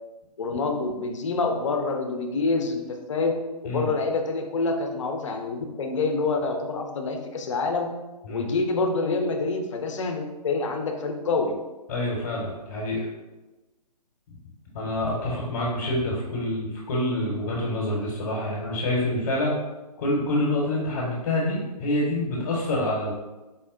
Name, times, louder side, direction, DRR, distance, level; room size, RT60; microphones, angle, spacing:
voice 1, 0.4-7.9 8.3-11.5, left 3 dB, 50° left, 4 dB, 0.5 m, -27 dB
voice 2, 11.9-13.1 14.7-19.6 20.0-23.1, left 1 dB, 30° left, -5 dB, 0.9 m, -27 dB
4.2 x 2.1 x 3.6 m, 1.1 s
figure-of-eight pair, 135°, 21 cm